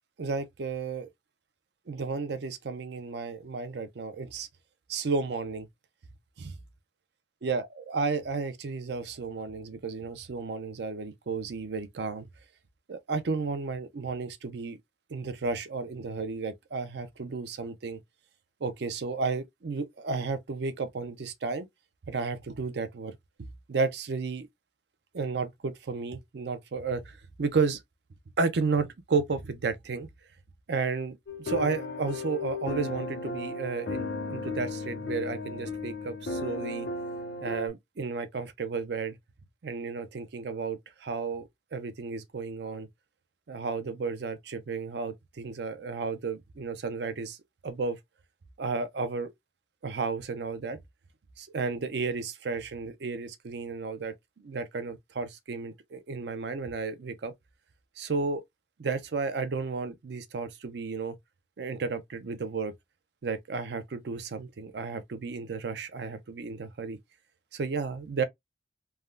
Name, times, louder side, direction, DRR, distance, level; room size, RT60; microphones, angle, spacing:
voice 1, 0.2-1.1 1.9-4.5 4.9-5.7 6.4-6.5 7.4-12.3 12.9-14.8 15.1-18.0 18.6-21.7 22.1-24.5 25.1-27.8 28.4-30.1 30.7-36.9 37.4-39.2 39.6-42.9 43.5-47.4 47.6-48.0 48.6-49.3 49.8-50.8 51.4-54.1 54.4-57.3 58.0-58.4 58.8-61.2 61.6-62.7 63.2-67.0 67.5-68.2, right 4 dB, 60° right, 0.5 m, -33 dB
sound 1, 31.3-37.7, left 3 dB, 60° left, 0.5 m, -35 dB
3.4 x 2.1 x 2.3 m
head